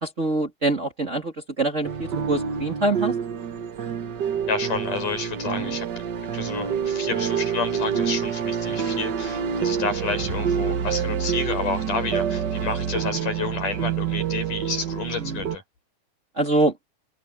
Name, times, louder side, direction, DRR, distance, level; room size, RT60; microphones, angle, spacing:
voice 1, 0.0-3.1 5.6-5.8 15.2-15.5 16.4-16.7, right 2 dB, 25° right, 2.3 m, -25 dB
sound 1, 1.8-15.6, right 7 dB, 60° right, 1.1 m, -27 dB
voice 2, 4.5-5.9 6.3-15.6, left 4 dB, 85° left, 7.9 m, -30 dB
omnidirectional pair, 3.6 m